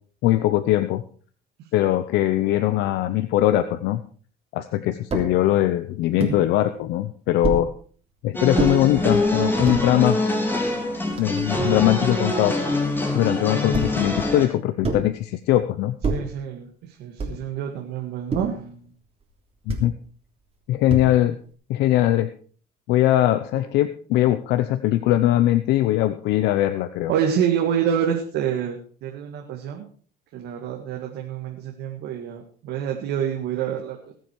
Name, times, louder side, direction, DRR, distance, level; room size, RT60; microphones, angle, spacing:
voice 1, 0.2-1.0 1.7-4.0 4.5-7.7 8.2-10.2 11.2-12.6 13.1-15.9 19.7-19.9 20.7-21.4 21.7-22.3 22.9-27.1, left 14 dB, 90° left, 10 dB, 0.8 m, -21 dB
sound 1, 5.1-5.3 6.2-6.4 7.4-7.7 8.6-8.7 9.5-9.8 10.6-10.7 10.9-11.9 13.7-14.1 14.8-15.2 16.0-16.4 17.2-17.5 18.3-18.6 19.7-19.9 20.9-21.3, right 3 dB, 35° right, 3.2 m, -28 dB
sound 2, 8.3-14.5, left 2 dB, 10° left, 3.4 m, -24 dB
voice 2, 16.1-18.9 23.5-23.6 27.1-29.9 30.3-34.1, right 8 dB, 80° right, 2 dB, 2.0 m, -27 dB
20.0 x 7.7 x 4.7 m, 0.43 s
cardioid pair, 110°, 17 cm